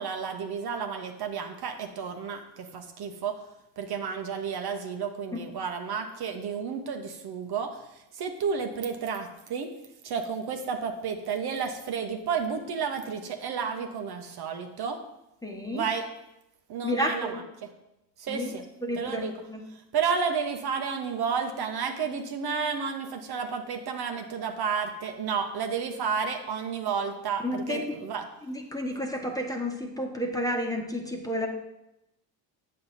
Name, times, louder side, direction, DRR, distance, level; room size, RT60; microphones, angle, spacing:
voice 1, 0.0-3.4 3.8-9.7 10.0-15.0 15.7-16.1 16.7-17.4 18.2-18.6 19.0-19.3 19.9-28.2, right 6 dB, 50° right, 4 dB, 1.1 m, -31 dB
voice 2, 15.4-15.9 16.8-17.4 18.3-18.5 18.9-19.6 27.4-27.8 28.5-31.5, equal, 5° left, 2 dB, 1.3 m, -31 dB
8.0 x 6.5 x 4.2 m, 0.87 s
hypercardioid pair, 70°, 49 cm